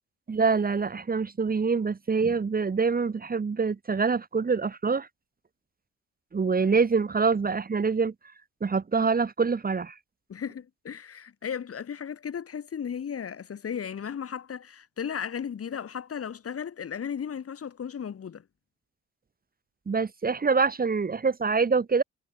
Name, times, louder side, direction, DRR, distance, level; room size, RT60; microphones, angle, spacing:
voice 1, 0.3-5.1 6.3-8.1 8.6-9.9 19.9-22.0, right 5 dB, 30° right, 1.9 m, -25 dB
voice 2, 10.3-18.4, left 7 dB, 50° left, 4.7 m, -35 dB
cardioid pair, 90°, 30 cm